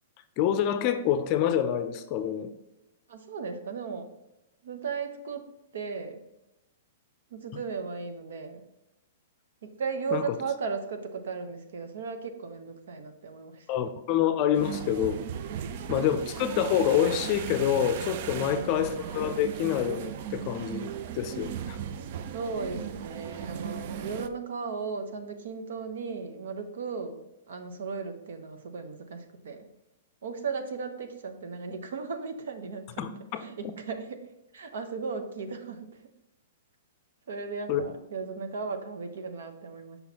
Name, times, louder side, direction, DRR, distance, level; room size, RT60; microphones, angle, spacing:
voice 1, 0.4-2.5 10.1-10.4 13.7-15.2 15.9-20.9 21.1-21.8 33.0-33.4 37.7-37.8, left 9 dB, 35° left, 10 dB, 0.5 m, -27 dB
voice 2, 3.1-4.1 4.6-5.4 5.7-6.2 7.3-8.6 9.8-13.7 15.6-15.7 18.3-18.8 22.3-27.2 27.5-29.7 30.2-33.0 33.4-34.2 34.5-35.9 37.3-40.0, right 5 dB, 75° right, 7 dB, 0.8 m, -36 dB
sound 1, 14.5-24.3, right 9 dB, 50° right, 0.4 m, -37 dB
6.0 x 5.6 x 2.9 m, 0.93 s
hypercardioid pair, 155°, 0 cm